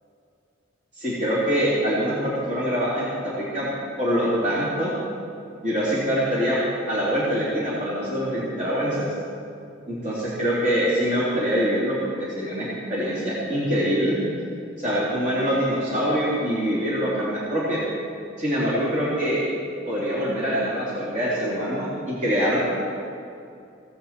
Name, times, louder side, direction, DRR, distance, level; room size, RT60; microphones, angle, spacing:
voice 1, 1.0-3.1 3.3-3.7 4.0-4.9 5.6-6.6 6.9-9.1 9.9-14.2 14.8-17.8 18.4-19.5 19.9-22.8, equal, 40° right, -8 dB, 3.2 m, -24 dB
16.5 x 14.0 x 4.4 m, 2.5 s
head